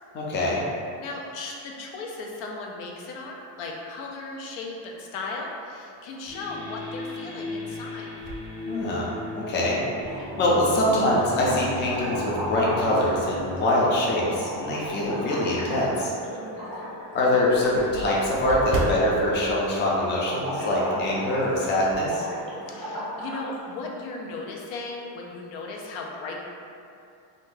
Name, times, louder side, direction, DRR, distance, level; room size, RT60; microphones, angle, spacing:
voice 1, 0.1-0.6 8.7-9.1 9.4-10.1 10.4-16.1 17.1-22.2, left 1 dB, 25° left, -5 dB, 0.4 m, -24 dB
voice 2, 1.0-8.1 16.3-16.9 22.7-26.4, left 3 dB, 90° left, -1 dB, 0.6 m, -36 dB
sound 1, 6.2-15.6, left 2 dB, 70° left, 1.3 m, -38 dB
sound 2, 8.2-9.5 10.0-10.1 11.6-12.1 12.6-15.2 15.7-15.8 16.2-16.3 16.6-16.7 16.9-20.7 20.9-21.2 21.5-22.1, right 2 dB, 50° right, 0.5 m, -37 dB
sound 3, 9.9-10.5 10.8-23.5, equal, 10° right, 0.7 m, -36 dB
2.6 x 2.5 x 3.6 m, 2.5 s
cardioid pair, 165°, 45 cm